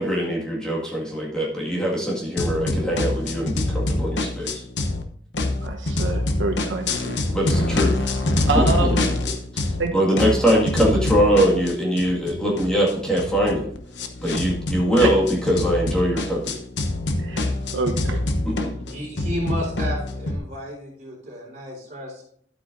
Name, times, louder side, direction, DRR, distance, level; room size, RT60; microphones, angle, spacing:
voice 1, 0.0-4.6 7.3-7.9 8.5-8.7 9.5-9.7 9.9-13.7 14.2-16.6 18.5-18.6, equal, 5° left, -5 dB, 1.9 m, -22 dB
sound 1, 2.4-5.0 5.3-9.9 10.2-20.4, left 2 dB, 70° left, 0.9 m, -25 dB
voice 2, 5.6-7.2 8.0-9.0 9.8-9.9 17.2-18.2, right 3 dB, 90° right, 3 dB, 1.0 m, -27 dB
voice 3, 18.9-22.2, equal, 40° right, -3 dB, 4.2 m, -32 dB
12.0 x 8.4 x 2.6 m, 0.63 s
head